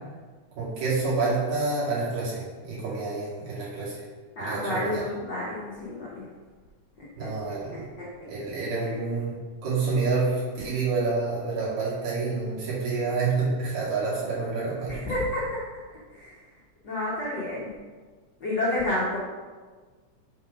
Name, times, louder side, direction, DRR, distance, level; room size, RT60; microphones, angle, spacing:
voice 1, 0.6-4.0 4.4-5.0 7.2-7.9 8.3-9.4 9.6-15.0, right 4 dB, 85° right, -8 dB, 3.9 m, -28 dB
voice 2, 4.4-6.3 7.0-7.3 7.7-8.1 8.8-9.0 14.9-15.6 16.1-16.3 16.8-17.7 18.4-19.2, left 1 dB, 80° left, -6 dB, 0.9 m, -30 dB
7.2 x 3.8 x 5.2 m, 1.4 s
omnidirectional pair, 3.8 m